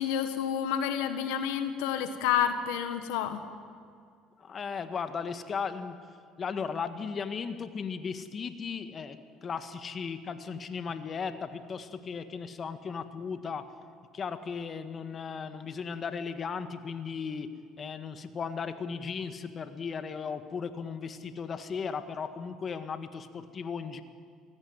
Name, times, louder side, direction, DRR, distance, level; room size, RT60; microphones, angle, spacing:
voice 1, 0.0-3.4, left 9 dB, 80° left, 9 dB, 1.5 m, -29 dB
voice 2, 4.4-6.0 6.4-13.7 14.1-17.5 17.8-24.0, left 6 dB, 40° left, 9 dB, 1.6 m, -36 dB
24.0 x 17.0 x 9.7 m, 2.2 s
hypercardioid pair, 70°, 0 cm